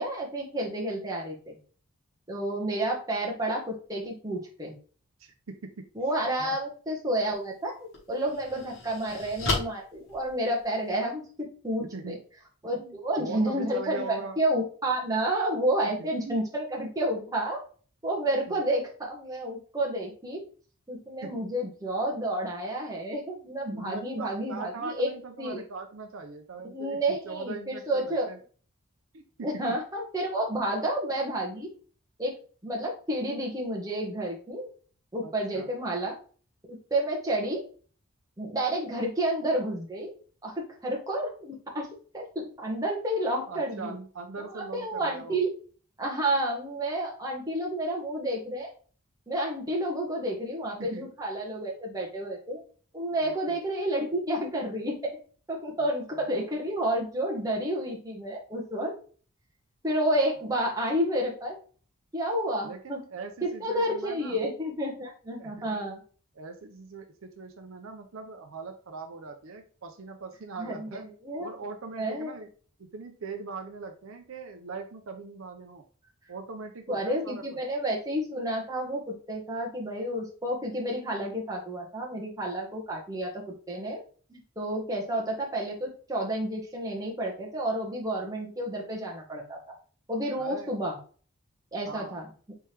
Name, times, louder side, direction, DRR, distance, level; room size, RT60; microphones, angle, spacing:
voice 1, 0.0-1.6 2.3-4.7 5.9-12.2 12.6-17.6 18.0-20.4 20.9-25.1 25.4-25.6 26.6-28.3 29.4-31.7 32.2-32.3 32.6-34.7 35.1-36.2 36.7-37.6 38.4-40.1 40.4-41.9 42.1-44.0 44.5-45.5 46.0-48.7 49.3-52.6 52.9-55.2 55.5-58.9 59.8-61.6 62.1-63.0 63.4-66.0 70.6-71.5 72.0-72.3 76.9-84.0 84.3-89.7 90.1-91.0 91.7-92.3, right 1 dB, 15° right, -2 dB, 1.1 m, -30 dB
voice 2, 5.2-5.8 6.4-6.6 11.9-12.2 12.8-14.4 15.8-16.4 18.5-18.6 21.2-21.3 23.7-28.4 29.1-29.5 35.2-35.7 43.5-45.4 50.9-51.1 53.2-53.6 55.8-56.2 62.6-64.4 65.4-65.8 66.3-71.1 71.4-72.5 72.8-75.8 76.3-77.6 90.4-90.7 91.9-92.2, right 4 dB, 70° right, 5 dB, 0.6 m, -41 dB
sound 1, 7.2-7.4 7.9-11.0, left 2 dB, 75° left, 1.9 m, -34 dB
4.4 x 3.4 x 3.2 m, 0.41 s
head